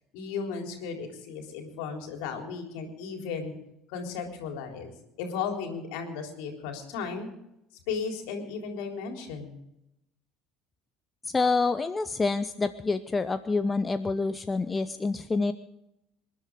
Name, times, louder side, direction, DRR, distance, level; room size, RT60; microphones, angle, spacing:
voice 1, 0.1-3.5 3.9-4.9 5.2-7.3 7.9-9.6, left 5 dB, 60° left, 3 dB, 3.6 m, -35 dB
voice 2, 11.2-15.5, left 3 dB, 20° left, 11 dB, 0.7 m, -27 dB
27.0 x 11.5 x 3.7 m, 0.84 s
figure-of-eight pair, 65°, 0 cm